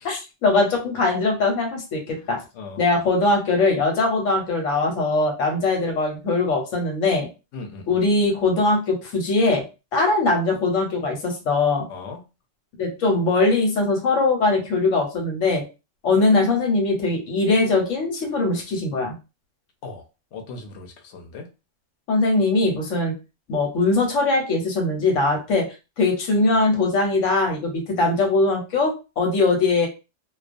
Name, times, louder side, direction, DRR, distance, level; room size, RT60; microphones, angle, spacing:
voice 1, 0.0-2.4 2.8-7.3 7.9-9.6 9.9-11.9 12.8-15.6 16.0-19.2 22.1-23.1 23.5-25.7 26.0-29.9, left 3 dB, 90° left, 2 dB, 1.2 m, -21 dB
voice 2, 2.2-2.8 7.5-8.0 11.9-12.2 19.8-20.0 20.3-21.5, left 3 dB, 70° left, 4 dB, 0.9 m, -38 dB
2.3 x 2.2 x 2.5 m, 0.29 s
omnidirectional pair, 1.3 m